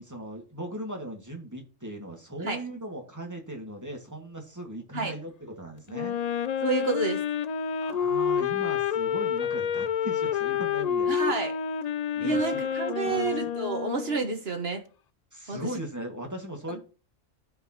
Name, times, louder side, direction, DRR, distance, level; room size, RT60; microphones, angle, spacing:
voice 1, 0.0-6.2 7.8-11.1 12.2-13.3 15.3-16.8, right 1 dB, 15° right, 2.0 m, -38 dB
Wind instrument woodwind instrument, 5.9-14.3, left 8 dB, 80° left, 0.3 m, -29 dB
voice 2, 6.6-7.2 11.1-11.5 12.2-14.8 15.5-15.7 16.7-16.8, right 3 dB, 50° right, 1.7 m, -29 dB
13.5 x 4.8 x 3.0 m
omnidirectional pair, 1.3 m